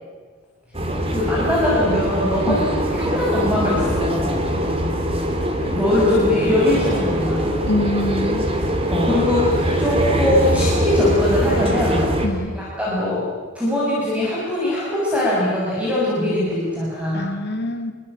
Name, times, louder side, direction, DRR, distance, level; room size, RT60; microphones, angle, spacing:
sound 1, 0.7-12.3, equal, 25° right, 3.3 m, -22 dB
voice 1, 1.1-4.3 5.7-7.4 8.9-12.0 12.5-13.3 13.5-17.3, left 1 dB, 5° right, -7 dB, 6.7 m, -21 dB
voice 2, 7.7-8.4 12.2-12.6 17.1-17.9, left 1 dB, 50° left, 7 dB, 2.4 m, -24 dB
27.5 x 23.5 x 8.9 m, 1.5 s
head